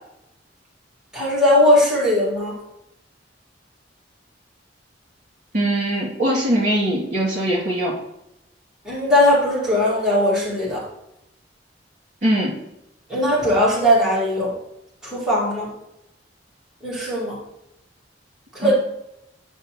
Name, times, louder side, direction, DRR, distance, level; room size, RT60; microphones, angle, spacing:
voice 1, 1.1-2.5 8.8-10.8 13.1-14.5 15.0-15.7 16.8-17.4 18.5-18.7, left 1 dB, 5° right, -8 dB, 2.2 m, -19 dB
voice 2, 5.5-7.9 12.2-12.6 18.6-18.7, right 1 dB, 45° right, -4 dB, 2.5 m, -21 dB
9.4 x 5.3 x 3.0 m, 0.85 s
head